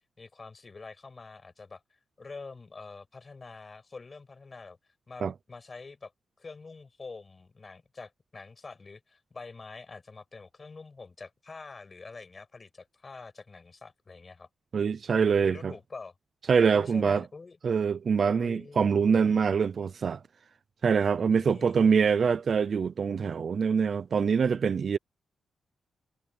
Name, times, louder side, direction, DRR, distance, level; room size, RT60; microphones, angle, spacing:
voice 1, 0.2-1.8 2.2-4.8 5.1-6.1 6.4-14.5 15.1-16.1 16.7-17.6 18.2-19.4 21.2-22.0, left 4 dB, 25° left, 6.4 m, -46 dB
voice 2, 14.7-15.7 16.5-17.2 17.6-20.2 20.8-25.0, right 6 dB, 40° right, 0.5 m, -24 dB
wide cardioid pair, 170°, 0 cm